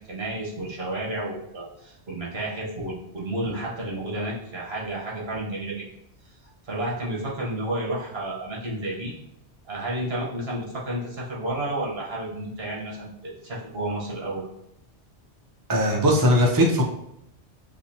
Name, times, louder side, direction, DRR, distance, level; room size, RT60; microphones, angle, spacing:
voice 1, 0.1-5.9 6.6-9.1 9.7-14.5, right 1 dB, 60° right, -4 dB, 1.4 m, -31 dB
voice 2, 15.7-16.8, equal, 30° right, -1 dB, 0.4 m, -19 dB
6.8 x 2.7 x 2.8 m, 0.78 s
omnidirectional pair, 1.2 m